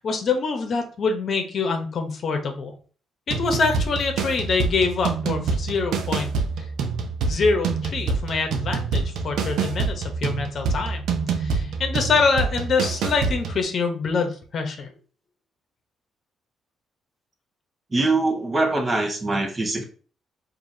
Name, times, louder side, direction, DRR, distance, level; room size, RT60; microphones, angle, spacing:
voice 1, 0.0-2.7 3.3-6.3 7.3-11.0 11.4-14.9, left 4 dB, 55° left, 5 dB, 0.9 m, -25 dB
sound 1, 3.3-13.6, right 4 dB, 80° right, 0.7 m, -26 dB
voice 2, 17.9-19.8, right 2 dB, 25° right, 2 dB, 1.1 m, -23 dB
4.7 x 2.7 x 2.7 m, 0.40 s
cardioid pair, 90°, 0 cm